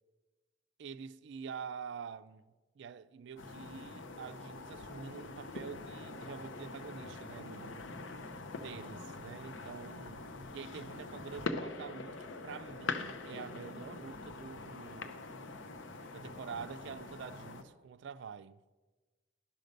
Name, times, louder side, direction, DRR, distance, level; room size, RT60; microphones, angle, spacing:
voice 1, 0.8-2.4 2.8-7.9 8.6-15.2 16.1-18.6, right 6 dB, 65° right, 0.4 m, -47 dB
sound 1, 3.4-17.6, left 3 dB, 75° left, 0.7 m, -44 dB
12.0 x 5.2 x 6.5 m
head